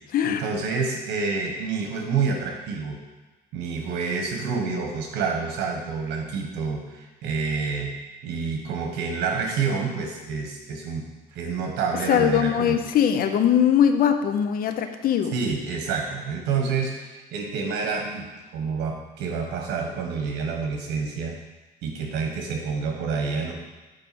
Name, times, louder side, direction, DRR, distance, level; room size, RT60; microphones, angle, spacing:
voice 1, 0.2-3.0 3.5-7.9 8.2-11.0 11.3-12.8 15.3-18.3 18.5-21.4 21.8-23.5, right 5 dB, 85° right, 1 dB, 1.4 m, -28 dB
voice 2, 12.1-15.3, left 9 dB, 60° left, 8 dB, 0.7 m, -21 dB
8.4 x 3.3 x 6.2 m, 1.2 s
cardioid pair, 110°, 17 cm